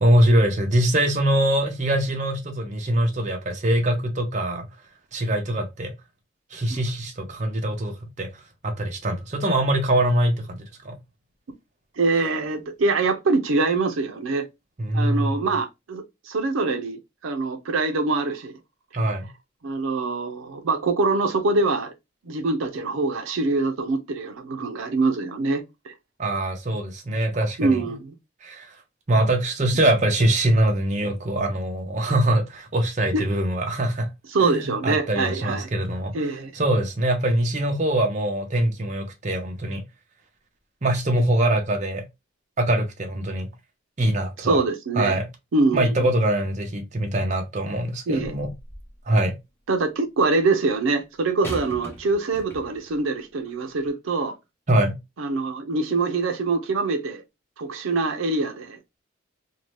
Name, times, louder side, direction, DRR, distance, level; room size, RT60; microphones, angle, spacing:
voice 1, 0.0-4.7 5.1-5.9 6.5-8.3 8.6-11.0 14.8-15.4 18.9-19.3 26.2-27.8 28.4-28.7 29.1-34.1 34.4-36.3 36.5-39.8 40.8-42.0 42.6-43.5 44.0-44.6 45.0-45.3 45.7-48.5 49.1-49.3 54.7-55.0, right 1 dB, 35° right, 0.6 m, -23 dB
voice 2, 12.0-14.5 14.9-18.5 19.6-21.9 22.3-25.9 27.6-28.1 33.1-33.2 34.3-35.7 36.1-36.5 44.4-45.2 45.5-45.9 48.1-48.3 49.7-54.3 55.2-57.2 57.6-58.8, right 3 dB, 80° right, 0.5 m, -24 dB
sound 1, 48.4-49.0 51.4-53.0 53.8-53.9, equal, 10° left, 0.7 m, -39 dB
2.7 x 2.1 x 3.0 m
head